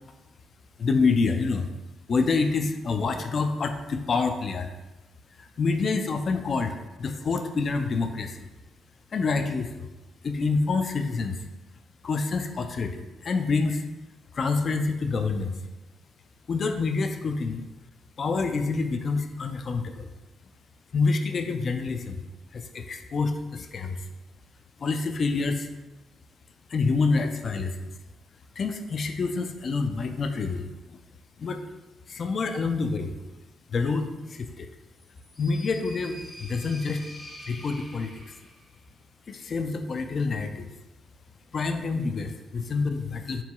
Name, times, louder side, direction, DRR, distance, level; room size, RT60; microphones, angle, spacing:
voice 1, 0.8-1.7 2.1-4.7 5.3-8.5 9.1-9.9 10.2-11.4 12.0-13.9 14.3-15.6 16.5-17.7 18.2-20.1 20.9-22.2 22.5-24.1 24.8-25.7 26.7-27.9 28.6-31.0 31.4-31.6 32.1-33.3 33.7-34.7 35.4-37.1 37.4-38.3 39.3-40.7 41.5-43.4, left 4 dB, 45° left, 6 dB, 0.3 m, -27 dB
sound 1, 35.0-38.7, left 1 dB, 5° left, 1.3 m, -46 dB
4.4 x 3.8 x 2.3 m, 1.1 s
cardioid pair, 90°, 0 cm